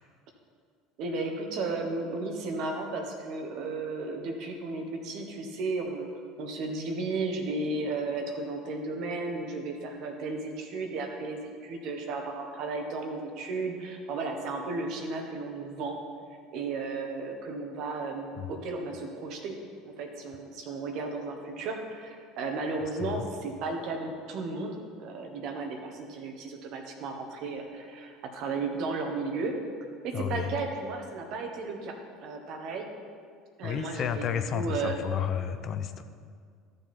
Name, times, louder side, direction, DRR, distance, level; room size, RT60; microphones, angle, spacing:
voice 1, 1.0-6.1 6.4-16.0 16.5-19.6 19.8-29.5 30.0-32.9 33.6-35.0, right 3 dB, 60° right, 3 dB, 1.5 m, -34 dB
voice 2, 30.1-30.5 33.6-36.0, left 9 dB, 50° left, 9 dB, 0.7 m, -31 dB
13.5 x 6.7 x 4.5 m, 2.1 s
hypercardioid pair, 70°, 0 cm